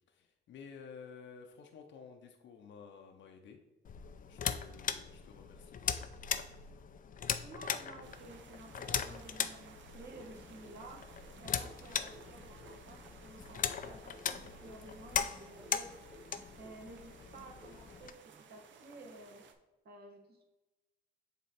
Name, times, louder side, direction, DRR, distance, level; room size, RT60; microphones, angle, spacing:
voice 1, 0.1-3.6 4.3-5.8, left 6 dB, 70° left, 4 dB, 0.8 m, -53 dB
sound 1, 3.8-18.1, left 8 dB, 45° left, 0.5 m, -39 dB
voice 2, 7.4-11.1 11.4-15.9 16.5-19.4 19.8-20.4, right 2 dB, 55° right, 0 dB, 1.4 m, -53 dB
sound 2, 8.0-19.5, right 6 dB, 70° right, 0.8 m, -58 dB
sound 3, 10.1-13.0 13.4-17.0 17.4-18.0, equal, 10° right, 1.7 m, -58 dB
7.7 x 3.1 x 4.2 m, 1.0 s
cardioid pair, 90°, 20 cm